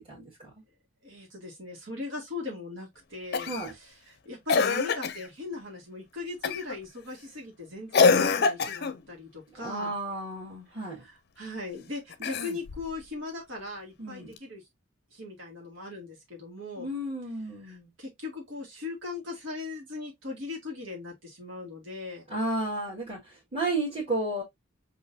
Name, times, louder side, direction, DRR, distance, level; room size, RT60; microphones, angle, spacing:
voice 1, 0.1-0.5 3.5-3.7 9.6-11.0 14.0-14.3 16.8-17.9 22.3-24.4, right 2 dB, 30° right, 1.7 m, -32 dB
voice 2, 1.0-9.9 10.7-14.6 15.1-16.9 17.6-22.2, left 3 dB, 70° right, 1.6 m, -39 dB
Cough, 3.3-3.7 4.5-5.3 6.4-6.8 7.9-9.0 12.1-12.9 14.4-14.5, left 5 dB, 50° left, 0.5 m, -25 dB
6.1 x 2.6 x 2.5 m
head